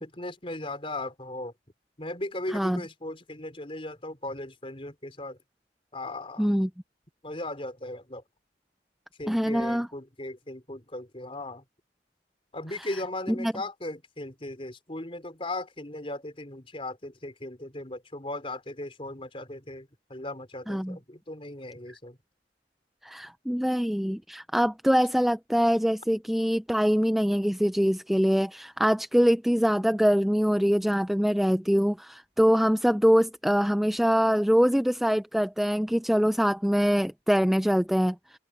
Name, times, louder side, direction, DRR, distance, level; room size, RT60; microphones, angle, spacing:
voice 1, 0.0-1.5 2.0-5.4 5.9-6.5 7.2-8.2 9.2-11.6 12.5-22.2, left 1 dB, 30° left, 4.3 m, -37 dB
voice 2, 6.4-6.7 9.3-9.9 13.4-13.5 20.7-21.0 23.0-38.4, equal, ahead, 0.3 m, -24 dB
head